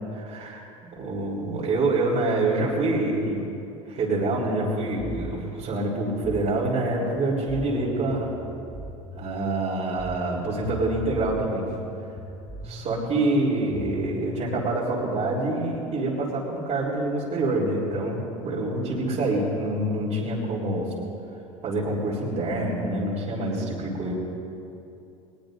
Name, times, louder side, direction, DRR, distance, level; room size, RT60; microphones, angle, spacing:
voice 1, 0.1-3.4 3.9-8.3 9.2-11.6 12.6-20.9 21.6-24.1, right 2 dB, 40° right, -6 dB, 3.6 m, -26 dB
sound 1, 4.4-14.4, left 1 dB, ahead, 1.5 m, -39 dB
21.5 x 21.0 x 2.6 m, 2.8 s
hypercardioid pair, 85°, 18 cm